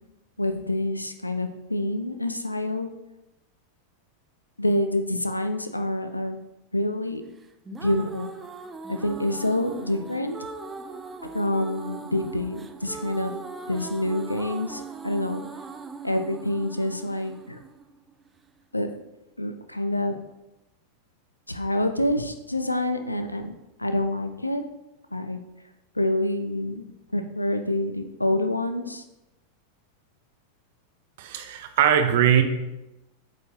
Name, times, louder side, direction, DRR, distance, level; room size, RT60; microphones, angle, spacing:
voice 1, 0.4-2.9 4.6-6.4 6.7-7.2 7.8-8.3 8.9-10.4 11.3-13.3 13.7-15.4 16.0-17.6 18.7-18.9 19.4-20.2 21.5-23.5 23.8-24.6 25.1-25.4 26.0-26.9 27.1-29.0, left 1 dB, 85° left, 7 dB, 0.5 m, -27 dB
sound 1, 7.4-18.5, right 4 dB, 15° right, 0.4 m, -40 dB
voice 2, 31.2-32.4, right 9 dB, 55° right, 7 dB, 0.7 m, -20 dB
8.1 x 5.0 x 3.1 m, 0.96 s
figure-of-eight pair, 90°, 0 cm